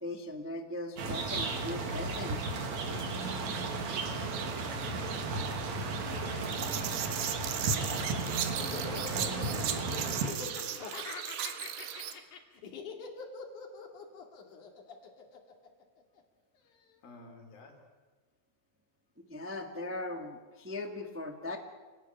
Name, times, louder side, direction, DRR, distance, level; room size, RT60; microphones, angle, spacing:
voice 1, 0.0-2.5 19.2-21.6, left 2 dB, 20° right, 4 dB, 0.3 m, -39 dB
sound 1, 1.0-10.3, right 3 dB, 55° right, 3.4 m, -34 dB
sound 2, 3.2-12.1, right 9 dB, 90° right, 3.4 m, -38 dB
voice 2, 7.5-10.9 17.0-17.8, left 3 dB, 90° left, 3 dB, 5.4 m, -48 dB
Laughter, 7.8-16.2, left 5 dB, 60° left, 3.6 m, -44 dB
26.5 x 18.5 x 9.0 m, 1.3 s
omnidirectional pair, 4.1 m